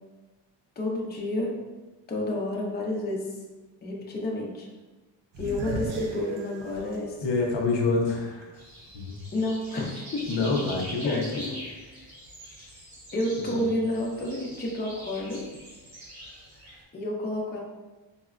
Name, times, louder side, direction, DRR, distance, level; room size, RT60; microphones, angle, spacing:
voice 1, 0.8-1.6 2.1-3.4 3.8-4.7 5.4-7.2 9.3-10.3 11.0-11.6 12.0-12.1 13.1-15.4 16.9-17.6, left 1 dB, 20° left, -2 dB, 0.5 m, -30 dB
sound 1, 5.3-8.5 8.9-9.0 10.6-10.9, right 2 dB, 90° right, 0.5 m, -36 dB
voice 2, 7.2-8.6 8.9-9.2 10.3-11.4 13.4-13.7, left 3 dB, 70° left, 0 dB, 0.7 m, -27 dB
sound 2, 8.5-16.8, equal, 55° right, 1.0 m, -44 dB
4.0 x 2.1 x 2.4 m, 1.2 s
wide cardioid pair, 110°, 45 cm